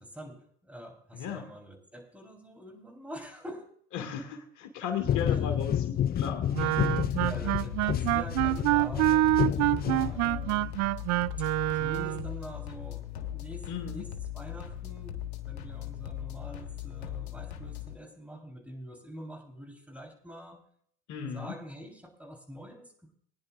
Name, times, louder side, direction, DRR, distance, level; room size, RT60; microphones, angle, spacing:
voice 1, 0.0-3.8 6.6-6.8 7.2-10.8 11.4-14.1 14.3-20.6 21.3-23.1, equal, 5° right, 3 dB, 3.8 m, -45 dB
voice 2, 1.1-1.5 3.9-6.9 13.7-14.0 21.1-21.5, left 7 dB, 65° left, 6 dB, 2.0 m, -36 dB
sound 1, 5.0-10.6, left 10 dB, 30° left, 0.4 m, -30 dB
Wind instrument woodwind instrument, 6.5-12.3, right 17 dB, 60° right, 0.4 m, -26 dB
sound 2, 6.9-17.9, left 11 dB, 85° left, 1.5 m, -39 dB
22.0 x 10.0 x 2.5 m, 0.63 s
hypercardioid pair, 70°, 31 cm